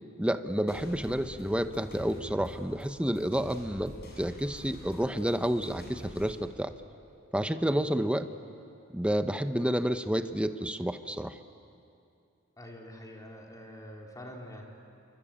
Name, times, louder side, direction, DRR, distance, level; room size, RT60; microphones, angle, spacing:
voice 1, 0.2-6.7 7.3-8.3 8.9-11.4, equal, 5° right, 9 dB, 0.9 m, -30 dB
sound 1, 0.7-6.3, equal, 50° left, 6.7 m, -47 dB
voice 2, 12.6-14.6, equal, 15° left, -1 dB, 3.8 m, -45 dB
28.0 x 24.0 x 8.8 m, 2.6 s
head